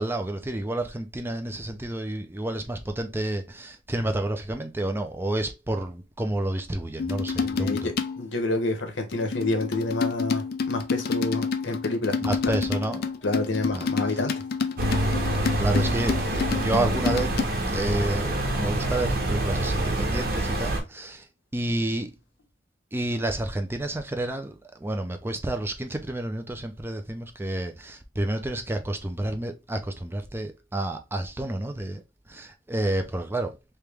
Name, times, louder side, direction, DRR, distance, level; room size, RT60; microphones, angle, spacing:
voice 1, 0.0-7.9 12.2-13.1 13.7-13.9 15.6-17.4 17.7-21.3 21.5-22.2 22.9-33.6, right 1 dB, 10° right, 0.4 m, -30 dB
sound 1, 7.0-8.3 9.1-17.4, left 5 dB, 55° left, 0.4 m, -29 dB
voice 2, 7.4-12.1 12.4-12.5 13.2-14.4, left 2 dB, 70° left, 1.0 m, -28 dB
sound 2, 14.8-20.8, right 1 dB, 55° right, 1.1 m, -26 dB
3.3 x 2.9 x 3.4 m
head